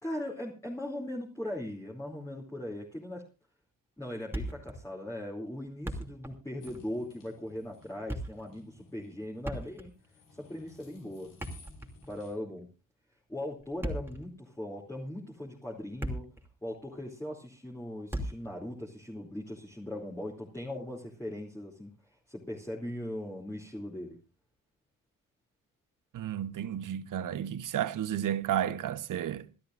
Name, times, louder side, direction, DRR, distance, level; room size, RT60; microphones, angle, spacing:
voice 1, 0.0-3.3 4.0-9.9 10.3-11.3 12.1-12.7 13.3-16.3 16.6-21.9 22.3-24.2, left 1 dB, 10° left, 2.9 m, -39 dB
Thump thud, 4.3-4.8 5.1-5.2 5.7-6.4 6.7-6.9 7.8-8.5 9.4-10.1 11.2-12.2 13.6-14.3 15.0-15.1 15.7-16.5 16.7-16.9 18.1-18.5, equal, 5° right, 2.8 m, -37 dB
sound 1, 6.6-12.3, left 4 dB, 70° left, 5.5 m, -58 dB
voice 2, 26.1-29.5, right 10 dB, 70° right, 1.0 m, -32 dB
27.0 x 12.0 x 2.6 m
cardioid pair, 90°, 33 cm